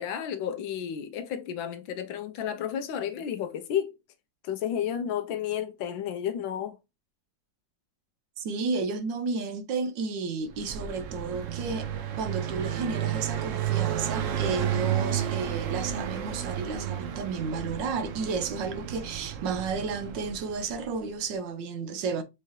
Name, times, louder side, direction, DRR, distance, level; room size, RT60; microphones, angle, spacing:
voice 1, 0.0-3.9 4.4-6.8, left 9 dB, 85° left, 1.5 m, -32 dB
voice 2, 8.4-11.9 12.2-22.2, right 4 dB, 70° right, 1.3 m, -32 dB
Car passing by, 10.5-21.1, right 10 dB, 90° right, 0.6 m, -32 dB
4.8 x 2.8 x 3.1 m
omnidirectional pair, 2.1 m